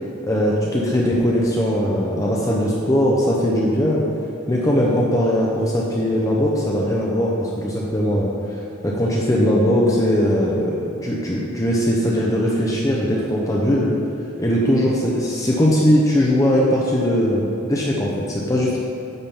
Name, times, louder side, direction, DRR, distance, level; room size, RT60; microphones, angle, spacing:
voice 1, 0.2-4.0 4.5-8.3 8.8-13.9 14.4-18.8, equal, 15° left, -4 dB, 0.7 m, -20 dB
9.7 x 3.7 x 7.1 m, 2.6 s
head